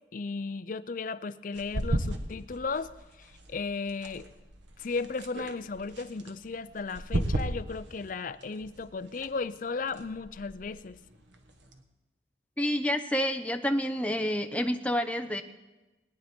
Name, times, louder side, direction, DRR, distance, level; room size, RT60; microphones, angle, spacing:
voice 1, 0.1-2.9 3.2-4.3 4.8-11.0, left 4 dB, 45° left, 13 dB, 0.5 m, -35 dB
sound 1, 1.5-11.8, right 1 dB, 85° right, 1.3 m, -37 dB
voice 2, 12.6-15.4, equal, 10° left, 7 dB, 0.7 m, -28 dB
21.5 x 9.5 x 4.4 m, 1.1 s
head